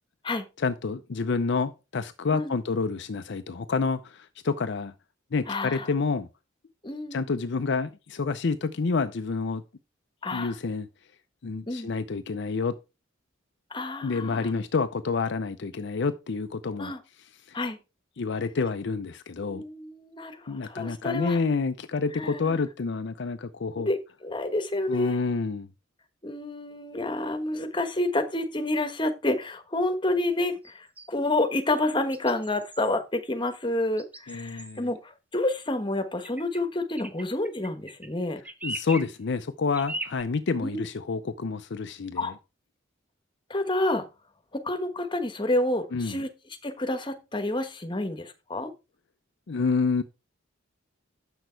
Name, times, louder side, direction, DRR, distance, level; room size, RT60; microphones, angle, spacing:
voice 1, 0.6-4.9 5.3-6.3 7.1-9.6 10.3-10.9 11.4-12.7 14.0-16.9 17.5-17.6 18.2-19.6 20.5-23.9 24.9-25.7 34.3-34.9 38.6-42.3 45.9-46.2 49.5-50.0, left 4 dB, 60° left, 0.5 m, -28 dB
voice 2, 5.5-5.9 6.8-7.3 10.2-10.5 11.7-11.9 13.7-14.5 16.8-17.0 17.5-17.8 19.5-21.4 22.1-22.6 23.8-25.1 26.2-38.4 40.6-40.8 42.2-42.3 43.5-44.0 44.5-46.3 46.6-48.7, left 2 dB, 25° left, 1.3 m, -29 dB
sound 1, 30.6-31.1 32.1-33.0 34.0-34.8 36.2-36.6 36.9-38.1 38.4-39.1 39.7-40.2, right 1 dB, 10° right, 0.7 m, -39 dB
7.8 x 6.2 x 4.5 m
head